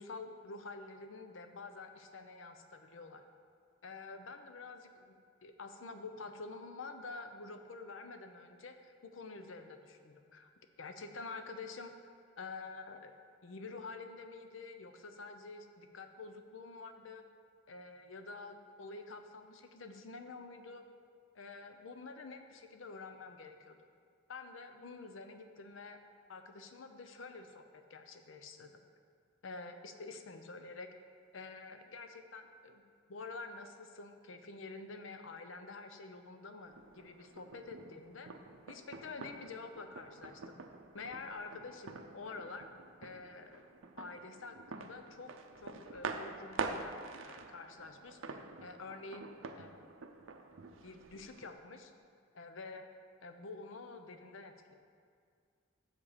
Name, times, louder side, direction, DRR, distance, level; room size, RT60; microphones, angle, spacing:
voice 1, 0.0-3.2 3.8-10.5 10.8-12.1 12.4-13.2 13.4-17.3 17.7-20.8 21.3-23.8 24.3-26.0 26.3-28.8 29.4-30.9 31.3-32.8 33.1-38.3 38.7-40.6 40.9-42.7 43.0-43.6 44.0-45.3 45.6-47.0 47.2-49.8 50.8-51.9 52.3-52.9 53.2-54.7, left 3 dB, 75° left, 7 dB, 0.7 m, -48 dB
sound 1, 36.6-51.5, right 4 dB, 90° right, 0.6 m, -46 dB
7.3 x 6.8 x 5.0 m, 2.1 s
head